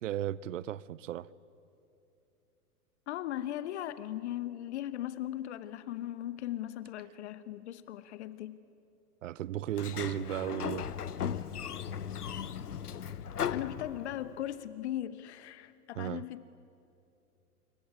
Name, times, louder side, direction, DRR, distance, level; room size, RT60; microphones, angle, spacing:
voice 1, 0.0-1.3 9.2-10.9 16.0-16.3, right 12 dB, 55° right, 0.7 m, -35 dB
voice 2, 3.1-8.6 13.5-16.5, left 12 dB, 45° left, 1.0 m, -38 dB
Sliding door, 9.7-14.4, left 8 dB, 75° left, 1.0 m, -37 dB
27.0 x 22.5 x 9.7 m
figure-of-eight pair, 105°, 46 cm